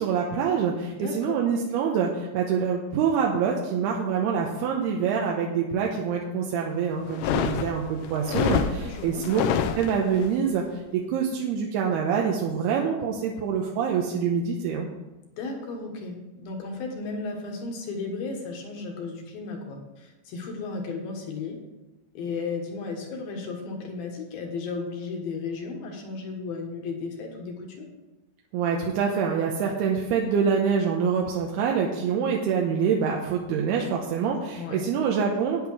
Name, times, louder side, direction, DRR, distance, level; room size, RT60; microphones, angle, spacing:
voice 1, 0.0-9.4 9.7-10.6 10.9-14.9 28.5-35.7, right 6 dB, 75° right, 0 dB, 2.6 m, -25 dB
voice 2, 0.9-1.4 8.6-9.3 15.4-21.6 22.1-27.9 34.6-34.9, left 4 dB, 65° left, 2 dB, 2.9 m, -34 dB
sound 1, 7.1-10.3, left 8 dB, 80° left, 2.4 m, -27 dB
10.5 x 9.5 x 4.8 m, 1.1 s
omnidirectional pair, 5.3 m